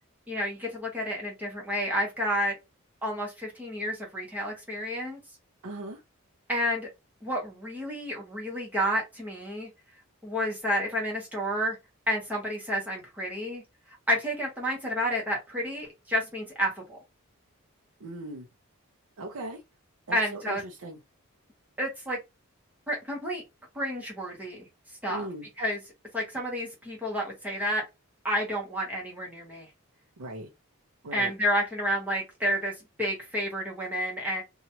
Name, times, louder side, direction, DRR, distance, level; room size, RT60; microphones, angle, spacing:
voice 1, 0.3-2.5 3.0-5.2 6.5-6.9 7.2-9.7 10.2-11.8 12.1-13.6 14.1-17.0 20.1-20.6 21.8-22.2 22.9-23.4 23.7-24.7 25.0-25.3 25.6-25.8 26.1-27.8 28.2-29.7 31.1-34.4, equal, 5° right, 1.0 m, -30 dB
voice 2, 5.6-6.0 18.0-18.5 19.2-19.6 20.1-21.0 25.1-25.5 30.2-30.5 31.0-31.3, right 1 dB, 85° right, 0.6 m, -38 dB
2.9 x 2.3 x 2.7 m
head